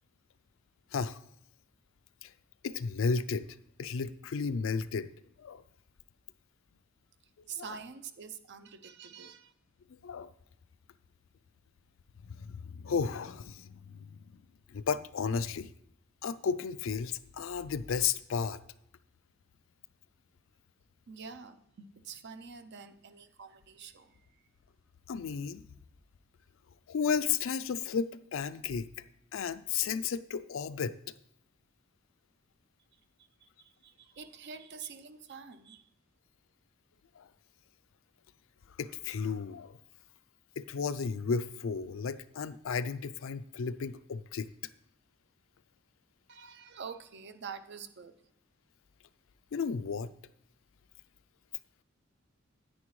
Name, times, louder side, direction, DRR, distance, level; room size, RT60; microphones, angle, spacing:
voice 1, 2.6-3.5 3.8-5.1 5.4-5.6 7.6-7.8 9.9-10.3 12.3-14.2 14.7-15.7 16.2-18.6 25.1-25.6 26.9-28.9 29.3-31.0 37.2-37.3 38.8-39.8 40.6-44.5 49.5-50.1, left 6 dB, 70° left, 14 dB, 0.4 m, -33 dB
voice 2, 7.5-9.5 21.1-24.4 33.4-35.9 46.3-48.3, right 6 dB, 60° right, 11 dB, 0.6 m, -46 dB
9.6 x 9.3 x 3.1 m, 0.76 s
head